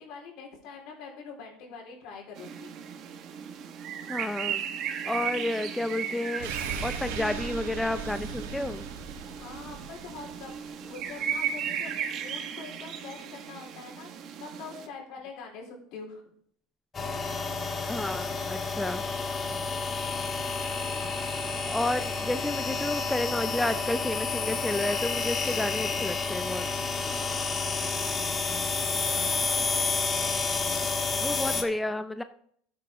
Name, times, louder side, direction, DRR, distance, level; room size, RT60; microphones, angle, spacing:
voice 1, 0.0-2.7 9.4-16.2 27.2-29.9, left 5 dB, 65° left, 0 dB, 4.1 m, -45 dB
sound 1, 2.4-14.9, right 8 dB, 50° right, 1.4 m, -36 dB
voice 2, 4.1-4.6 5.1-6.5 6.8-8.9 17.9-19.0 21.7-26.6 31.2-32.2, left 2 dB, 5° left, 10 dB, 0.5 m, -31 dB
sound 2, 6.4-11.3 11.6-11.7, right 5 dB, 90° right, 1.8 m, -39 dB
sound 3, 16.9-31.6, left 4 dB, 25° left, 1.6 m, -30 dB
14.0 x 7.8 x 3.6 m, 0.65 s
supercardioid pair, 110°, 0 cm